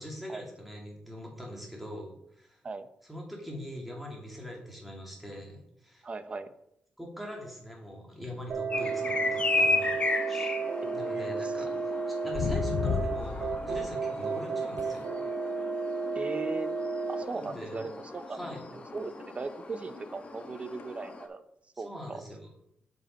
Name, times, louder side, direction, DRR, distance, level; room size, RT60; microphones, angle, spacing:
voice 1, 0.0-2.6 3.1-6.1 7.0-10.0 10.3-10.5 10.9-15.2 17.3-17.8 18.3-18.6 21.7-22.5, equal, ahead, -1 dB, 2.5 m, -42 dB
voice 2, 6.0-6.5 10.8-11.5 16.1-16.7 17.1-18.4 18.7-21.4 21.8-22.2, right 3 dB, 35° right, 12 dB, 0.7 m, -38 dB
sound 1, 8.5-17.2, right 4 dB, 60° right, 0.9 m, -33 dB
sound 2, 8.7-21.3, left 3 dB, 35° left, 1.1 m, -35 dB
taking-sip, 12.3-14.0 14.8-15.0 20.8-20.9, left 7 dB, 75° left, 0.4 m, -32 dB
7.3 x 5.4 x 5.2 m, 0.79 s
cardioid pair, 105°, 4 cm